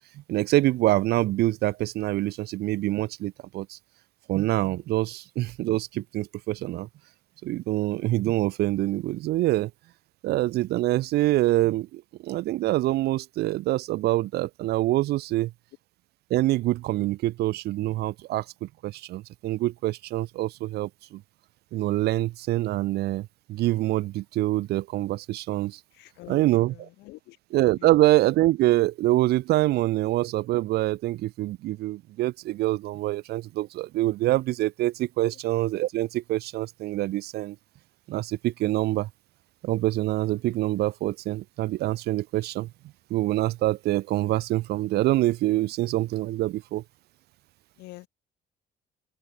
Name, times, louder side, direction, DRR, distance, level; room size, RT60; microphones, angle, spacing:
voice 1, 0.3-3.8 4.3-6.9 7.4-9.7 10.2-15.5 16.3-21.2 21.7-25.8 26.3-26.9 27.5-37.6 38.1-39.1 39.6-42.7 43.1-46.8, right 16 dB, 75° right, 0.8 m, -25 dB
voice 2, 25.9-27.4 27.8-28.0 35.2-35.4 47.8-48.1, left 20 dB, 90° left, 2.3 m, -46 dB
open air
cardioid pair, 110°, 17 cm